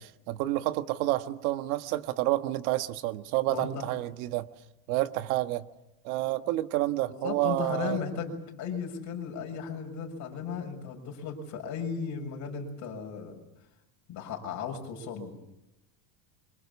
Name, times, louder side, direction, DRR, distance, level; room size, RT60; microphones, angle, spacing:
voice 1, 0.3-4.5 4.9-5.7 6.0-8.0, right 16 dB, 75° right, 10 dB, 1.5 m, -29 dB
voice 2, 3.5-3.9 7.1-13.4 14.1-15.3, left 6 dB, 40° left, 1 dB, 6.9 m, -36 dB
27.5 x 25.5 x 7.1 m, 0.91 s
supercardioid pair, 150°, 44 cm